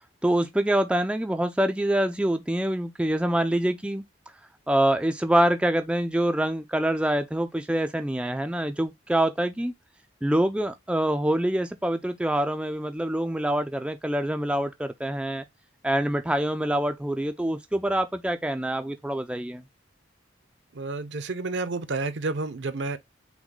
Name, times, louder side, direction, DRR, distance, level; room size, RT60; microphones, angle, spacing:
voice 1, 0.2-4.0 4.7-9.7 10.2-15.4 15.8-19.6, right 1 dB, 5° right, 0.3 m, -25 dB
voice 2, 20.7-23.0, right 3 dB, 65° right, 0.6 m, -30 dB
5.9 x 2.2 x 3.8 m
head